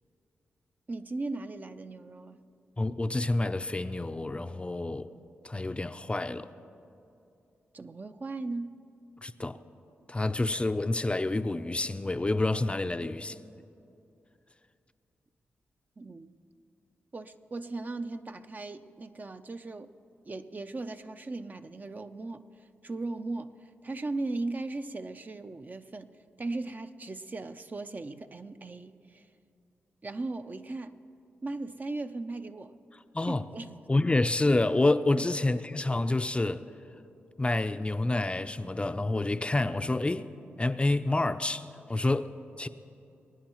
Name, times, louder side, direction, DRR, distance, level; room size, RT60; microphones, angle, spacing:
voice 1, 0.9-2.4 7.7-8.8 16.0-16.3 17.1-19.9 20.3-22.4 22.8-23.5 23.8-26.1 26.4-29.3 30.0-31.0 31.4-32.7 33.3-33.7 35.1-35.3, right 2 dB, 35° right, 9 dB, 0.5 m, -37 dB
voice 2, 2.8-5.1 5.4-6.5 9.2-9.6 10.1-13.4 33.1-33.4 33.9-36.7 37.4-40.3 40.6-42.7, left 2 dB, 25° left, 11 dB, 0.5 m, -28 dB
23.0 x 9.5 x 3.0 m, 2.6 s
supercardioid pair, 50°, 5 cm